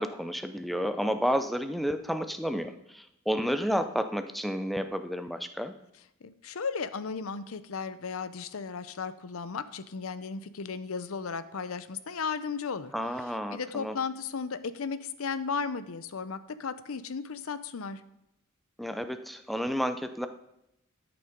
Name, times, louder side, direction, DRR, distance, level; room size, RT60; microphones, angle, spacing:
voice 1, 0.0-5.7 12.9-14.0 18.8-20.3, equal, ahead, 9 dB, 0.5 m, -31 dB
voice 2, 6.2-12.9 13.5-18.0, left 5 dB, 70° left, 14 dB, 0.6 m, -35 dB
12.0 x 6.9 x 5.1 m, 0.83 s
head